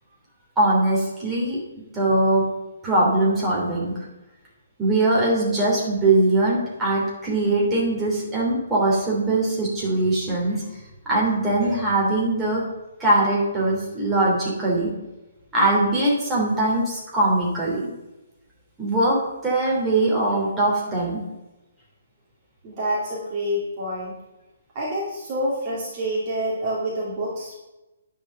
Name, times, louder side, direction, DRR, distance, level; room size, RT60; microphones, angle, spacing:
voice 1, 0.6-1.6 1.9-2.4 2.8-3.9 4.8-10.6 11.1-12.6 13.0-14.9 15.5-17.9 18.8-19.2 19.4-21.2, right 2 dB, 10° right, -6 dB, 3.2 m, -21 dB
voice 2, 22.6-24.2 24.7-27.5, equal, 30° right, -5 dB, 2.6 m, -27 dB
9.7 x 5.0 x 6.7 m, 1.0 s
figure-of-eight pair, 130°, 0 cm